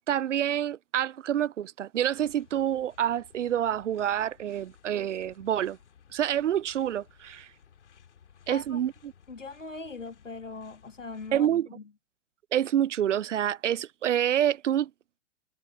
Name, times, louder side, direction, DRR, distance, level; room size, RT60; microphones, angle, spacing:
voice 1, 0.1-5.8 6.1-7.5 8.5-9.1 11.3-11.7 12.5-14.9, right 10 dB, 75° right, 0.5 m, -27 dB
sound 1, 2.0-11.5, left 7 dB, 65° left, 2.9 m, -58 dB
voice 2, 8.5-8.8 9.3-11.5 11.7-11.9, left 3 dB, 85° left, 1.8 m, -40 dB
figure-of-eight pair, 105°, 37 cm